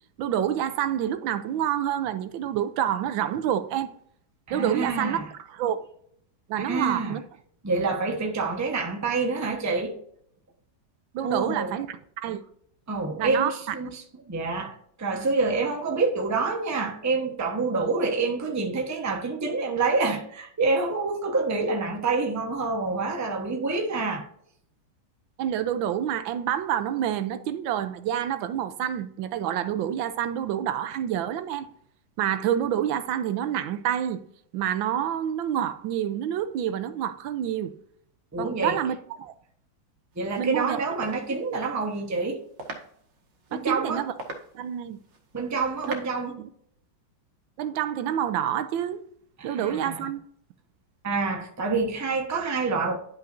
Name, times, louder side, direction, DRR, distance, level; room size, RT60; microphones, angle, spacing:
voice 1, 0.2-3.9 4.5-5.2 5.5-5.9 6.5-7.2 11.1-12.4 13.2-13.7 25.4-31.7 32.2-34.2 34.5-37.7 38.4-39.3 40.4-40.8 43.5-44.1 44.5-45.0 45.9-46.0 46.4-46.5 47.6-49.0 49.4-50.2, right 10 dB, 80° right, 1.4 m, -28 dB
voice 2, 4.5-5.3 6.6-7.2 7.6-9.9 11.2-11.8 12.9-24.3 38.3-38.8 40.2-42.4 43.5-44.1 45.3-46.3 49.4-50.1 51.0-53.0, right 3 dB, 15° right, 0.7 m, -27 dB
sound 1, 40.1-46.3, right 3 dB, 65° right, 1.9 m, -44 dB
11.0 x 5.5 x 2.6 m
omnidirectional pair, 2.2 m